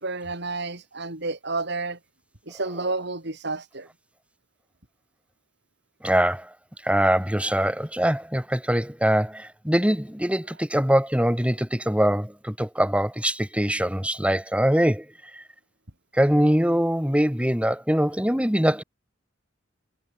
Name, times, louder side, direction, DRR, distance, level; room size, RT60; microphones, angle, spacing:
voice 1, 0.0-2.0 2.5-3.9, right 3 dB, 60° right, 3.9 m, -30 dB
voice 2, 6.0-6.5 6.8-15.1 15.3-15.4 16.1-18.8, equal, 5° right, 3.6 m, -23 dB
head